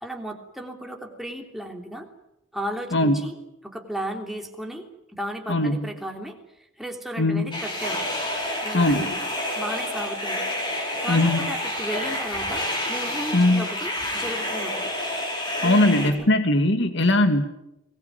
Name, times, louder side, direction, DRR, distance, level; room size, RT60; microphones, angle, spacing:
voice 1, 0.0-2.1 2.5-3.3 3.6-4.8 5.1-6.4 6.8-8.1 8.6-9.2 9.6-10.5 10.8-14.9 15.6-16.3, equal, ahead, 2 dB, 3.3 m, -34 dB
voice 2, 2.9-3.3 5.5-5.9 7.2-7.6 8.7-9.1 11.1-11.4 13.3-13.7 15.6-17.4, left 1 dB, 65° left, 8 dB, 2.2 m, -20 dB
sound 1, 7.5-16.1, left 1 dB, 25° left, 5.8 m, -29 dB
23.5 x 19.5 x 9.5 m, 0.86 s
head